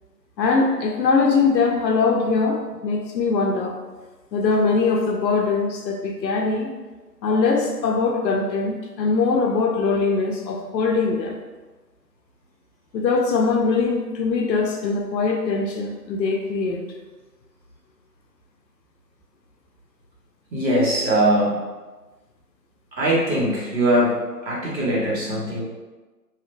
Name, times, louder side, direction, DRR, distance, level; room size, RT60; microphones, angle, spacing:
voice 1, 0.4-3.8 4.3-6.7 7.2-11.4 12.9-16.8, left 4 dB, 85° left, 1 dB, 0.6 m, -22 dB
voice 2, 20.5-21.6 23.0-25.6, right 1 dB, 85° right, -6 dB, 1.3 m, -21 dB
2.7 x 2.1 x 2.5 m, 1.2 s
hypercardioid pair, 180°, 50 cm